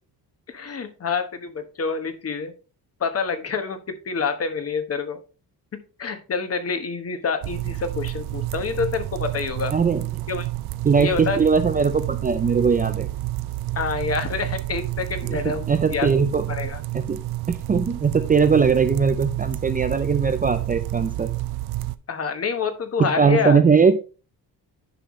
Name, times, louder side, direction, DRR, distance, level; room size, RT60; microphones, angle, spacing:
voice 1, 0.5-2.5 3.0-5.2 6.0-9.7 10.3-10.5 11.0-11.4 13.7-16.1 16.5-16.8 22.1-23.6, left 5 dB, 40° left, 8 dB, 1.2 m, -27 dB
sound 1, 7.4-22.0, right 17 dB, 75° right, 0.6 m, -29 dB
voice 2, 9.7-10.0 10.8-13.1 15.4-16.4 16.9-17.2 17.5-21.3 23.0-24.1, right 5 dB, 20° right, 8 dB, 0.4 m, -20 dB
10.0 x 5.6 x 3.1 m, 0.34 s
cardioid pair, 140°, 39 cm